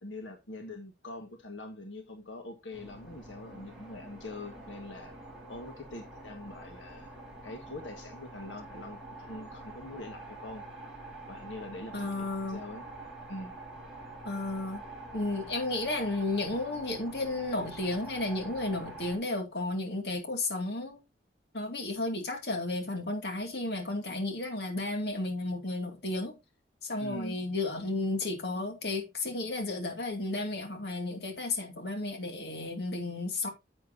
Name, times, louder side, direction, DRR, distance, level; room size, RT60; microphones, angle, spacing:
voice 1, 0.0-5.1 5.5-7.1 7.4-10.6 11.3-12.8 13.3-13.5 27.0-27.4, left 2 dB, 85° left, 1.7 m, -43 dB
sound 1, 2.7-19.2, right 2 dB, ahead, 5.4 m, -46 dB
voice 2, 11.9-12.6 14.3-14.8 15.1-21.0 21.5-26.4 26.8-33.5, left 2 dB, 60° left, 2.4 m, -33 dB
10.5 x 7.9 x 2.7 m
head